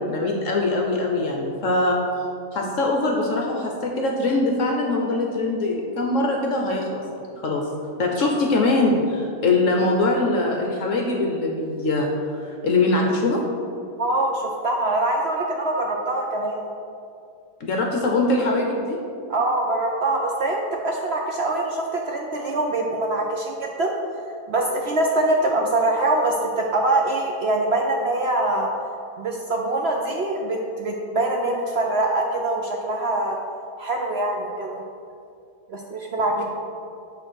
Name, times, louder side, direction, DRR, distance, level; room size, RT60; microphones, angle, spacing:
voice 1, 0.1-2.0 2.5-7.0 7.4-7.7 8.0-12.1 12.4-13.4 17.6-19.0, left 2 dB, 60° left, 0 dB, 1.0 m, -22 dB
voice 2, 14.0-16.6 19.3-23.9 24.5-28.7 29.2-33.4 33.8-34.8 35.7-36.4, right 2 dB, 65° right, 0 dB, 0.6 m, -24 dB
8.5 x 3.2 x 6.2 m, 2.5 s
omnidirectional pair, 1.7 m